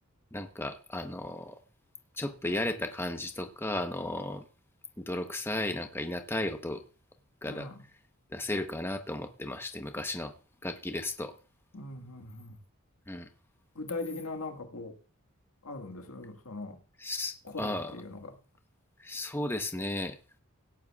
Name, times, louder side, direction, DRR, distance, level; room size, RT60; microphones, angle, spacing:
voice 1, 0.3-1.6 2.2-4.4 5.0-6.8 7.4-7.7 8.3-10.3 10.6-11.3 13.1-13.3 17.0-17.9 19.0-20.2, left 1 dB, 10° left, 0.9 m, -34 dB
voice 2, 7.5-7.9 11.7-12.6 13.8-15.0 15.6-16.8 17.4-18.4, left 3 dB, 85° left, 1.7 m, -40 dB
17.5 x 10.0 x 2.4 m
head